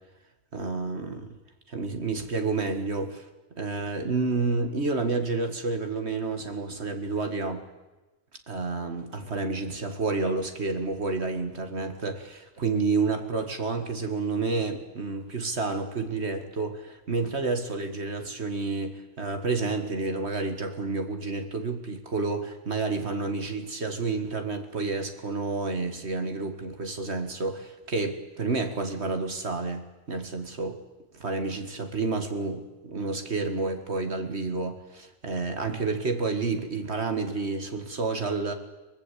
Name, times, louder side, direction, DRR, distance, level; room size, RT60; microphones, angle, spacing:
voice 1, 0.5-1.4 1.7-7.6 8.5-29.8 30.1-30.8 31.1-38.5, right 3 dB, 60° right, 6 dB, 2.1 m, -30 dB
23.5 x 19.5 x 8.4 m, 1.1 s
omnidirectional pair, 1.3 m